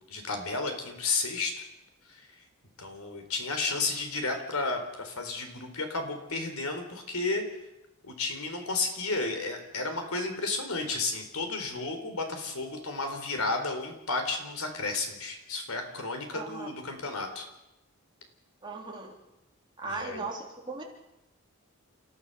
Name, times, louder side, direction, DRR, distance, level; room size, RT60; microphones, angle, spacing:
voice 1, 0.0-1.6 2.1-2.4 2.8-7.4 8.0-17.5 19.9-20.2, left 3 dB, 85° left, 5 dB, 4.1 m, -32 dB
voice 2, 16.3-16.7 18.6-19.1 19.8-20.8, right 3 dB, 20° right, -1 dB, 3.6 m, -37 dB
29.0 x 15.5 x 7.0 m, 0.91 s
head